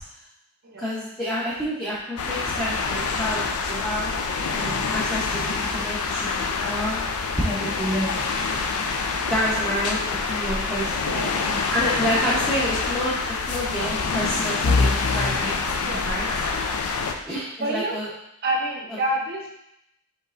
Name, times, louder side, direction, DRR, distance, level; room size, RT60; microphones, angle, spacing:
voice 1, 0.8-4.2 4.5-7.0 7.4-8.2 9.3-10.0 10.3-10.9 11.7-13.1 13.5-16.3 17.3-18.1, equal, ahead, -9 dB, 0.7 m, -28 dB
sound 1, 2.2-17.1, left 4 dB, 90° left, 0.4 m, -26 dB
voice 2, 9.3-9.8 11.0-11.4 15.8-16.6 17.6-18.0 18.4-19.5, right 1 dB, 45° right, -1 dB, 0.7 m, -29 dB
5.3 x 3.5 x 2.4 m, 0.80 s
head